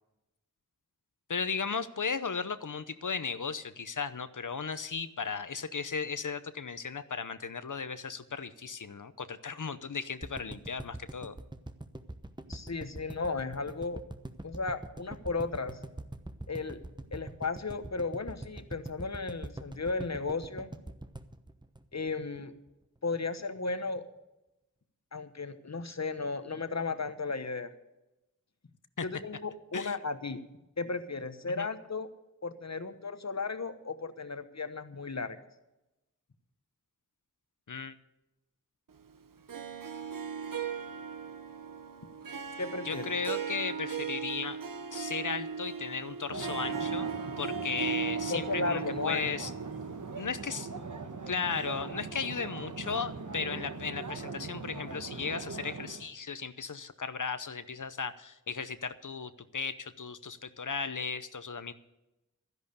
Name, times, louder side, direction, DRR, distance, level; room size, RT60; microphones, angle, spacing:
voice 1, 1.3-11.3 29.0-29.1 29.7-30.0 31.6-31.7 37.7-38.0 42.8-44.6 44.9-47.1 47.4-49.5 50.1-50.7 51.3-61.7, left 5 dB, 70° left, 13 dB, 0.8 m, -36 dB
sound 1, 10.2-22.4 22.7-22.8 23.0-23.1, right 1 dB, 15° right, 1.0 m, -43 dB
voice 2, 12.5-14.0 14.4-15.8 16.5-16.8 17.1-20.7 21.9-22.5 23.0-24.0 25.1-27.7 29.0-30.4 30.8-32.1 32.4-35.4 42.6-43.1 48.3-49.3, left 4 dB, 55° left, 10 dB, 1.2 m, -35 dB
Harp, 39.5-50.6, right 6 dB, 90° right, 0.8 m, -38 dB
sound 2, 46.3-56.1, right 4 dB, 70° right, 1.1 m, -41 dB
12.5 x 11.0 x 6.8 m, 0.97 s
wide cardioid pair, 45°, 32 cm